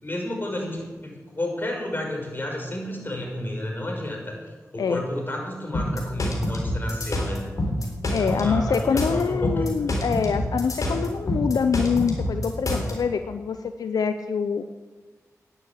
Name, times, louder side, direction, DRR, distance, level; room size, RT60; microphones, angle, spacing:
voice 1, 0.0-4.4 4.7-7.4 8.2-9.6, left 1 dB, 35° left, 0 dB, 5.5 m, -31 dB
sound 1, 5.7-12.9, left 1 dB, 65° left, 3.6 m, -26 dB
voice 2, 8.1-14.6, left 6 dB, 85° left, 9 dB, 0.6 m, -25 dB
10.0 x 10.0 x 8.3 m, 1.3 s
cardioid pair, 40°, 6 cm